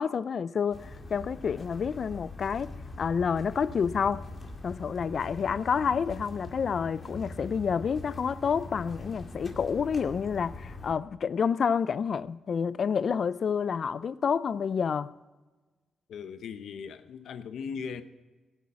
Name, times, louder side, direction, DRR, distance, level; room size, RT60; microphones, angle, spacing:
voice 1, 0.0-2.7 3.0-4.3 4.6-15.1, left 6 dB, 50° left, 0.4 m, -29 dB
sound 1, 0.7-10.9, left 2 dB, 25° left, 2.2 m, -42 dB
voice 2, 16.1-18.0, left 6 dB, 75° left, 0.8 m, -38 dB
18.0 x 6.3 x 8.6 m
cardioid pair, 105°, 0 cm